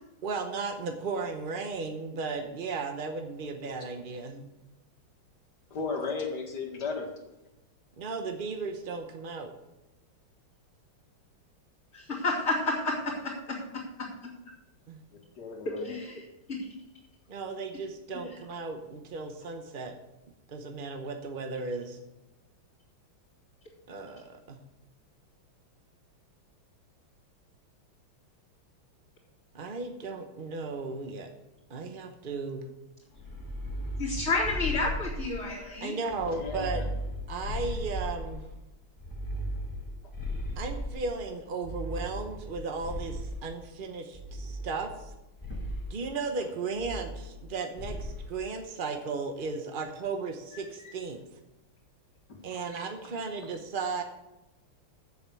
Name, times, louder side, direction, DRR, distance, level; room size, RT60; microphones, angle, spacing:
voice 1, 0.2-4.5 8.0-9.5 14.9-15.0 17.3-19.9 20.5-22.0 23.9-24.6 29.5-31.3 31.7-32.6 35.5-36.8 37.3-38.5 40.6-45.1 45.9-51.2 52.4-54.0, right 4 dB, 55° right, 5 dB, 0.6 m, -35 dB
voice 2, 5.7-7.1 15.4-16.0 36.3-36.7 45.5-45.6 50.5-50.9 52.3-52.4 52.7-52.8 53.4-53.5, left 4 dB, 55° left, 1 dB, 2.3 m, -36 dB
voice 3, 11.9-12.9 15.8-16.2 16.6-16.7 34.0-35.9, left 3 dB, 30° left, -9 dB, 3.0 m, -30 dB
sound 1, 33.2-35.6 36.1-38.5 39.0-41.2 41.6-43.5 44.1-45.1 45.4-45.9 46.8-47.5 47.8-48.2, equal, 10° left, 1.2 m, -36 dB
7.8 x 7.3 x 8.2 m, 0.98 s
omnidirectional pair, 2.3 m